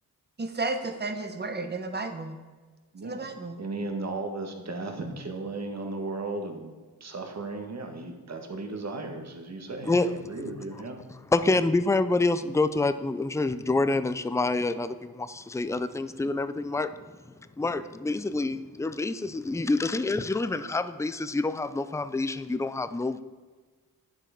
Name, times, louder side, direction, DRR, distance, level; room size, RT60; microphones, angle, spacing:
voice 1, 0.4-2.4 3.0-3.6, right 3 dB, 25° right, 6 dB, 1.2 m, -32 dB
voice 2, 2.9-3.3 3.6-11.0, right 3 dB, 45° right, 4 dB, 1.7 m, -36 dB
voice 3, 11.3-17.0 17.6-23.2, left 3 dB, 10° left, 12 dB, 0.5 m, -27 dB
10.5 x 7.5 x 5.1 m, 1.4 s
cardioid pair, 85°, 37 cm